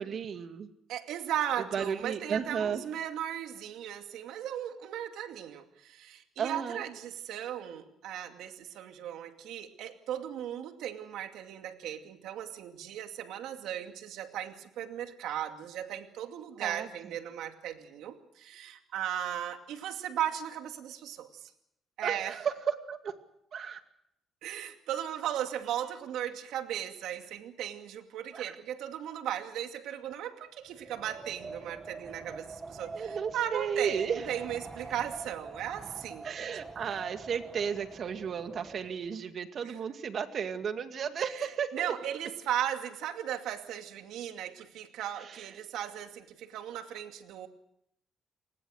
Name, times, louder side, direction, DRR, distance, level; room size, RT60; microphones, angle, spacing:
voice 1, 0.0-0.7 1.7-2.8 6.4-6.8 16.6-17.1 22.0-23.1 23.5-23.8 28.3-28.5 32.9-34.2 36.2-41.9 45.2-45.4, right 7 dB, 55° right, 7 dB, 2.3 m, -34 dB
voice 2, 0.9-21.5 22.0-22.4 24.4-36.3 39.6-39.8 41.7-47.5, right 10 dB, 85° right, 6 dB, 2.4 m, -37 dB
Wind, 30.7-39.1, right 3 dB, 30° right, 1.5 m, -45 dB
29.5 x 20.0 x 6.5 m, 0.77 s
cardioid pair, 90°, 0 cm